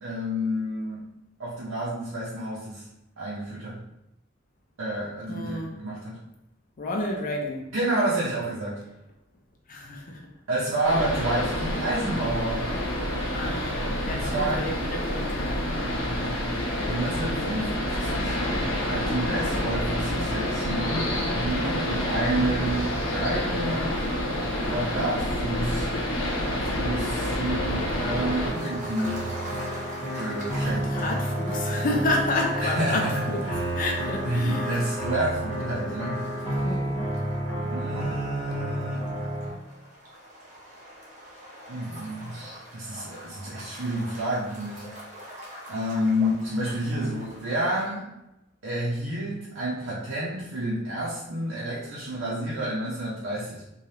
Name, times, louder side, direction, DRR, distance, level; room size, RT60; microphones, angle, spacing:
voice 1, 0.0-1.0 1.4-2.8 3.2-3.8 4.8-6.2 7.7-8.8 10.5-12.7 14.1-14.6 16.1-16.4 16.9-18.4 18.9-24.1 24.6-25.9 26.6-29.2 30.1-31.0 32.6-33.6 34.2-36.2 37.7-39.1 41.7-44.9 45.7-48.1 48.6-53.6, right 1 dB, 80° right, -7 dB, 0.7 m, -29 dB
voice 2, 5.3-5.7 6.8-7.7 9.7-10.3 13.3-15.7 30.7-33.4 33.7-34.9 36.6-37.1, left 2 dB, 45° left, 1 dB, 0.4 m, -30 dB
sound 1, 10.8-28.5, left 1 dB, 85° left, 0.8 m, -28 dB
sound 2, 27.5-39.5, right 1 dB, 25° left, 1.1 m, -31 dB
sound 3, 28.5-47.9, equal, 40° right, 0.8 m, -44 dB
3.2 x 2.3 x 2.8 m, 0.88 s
head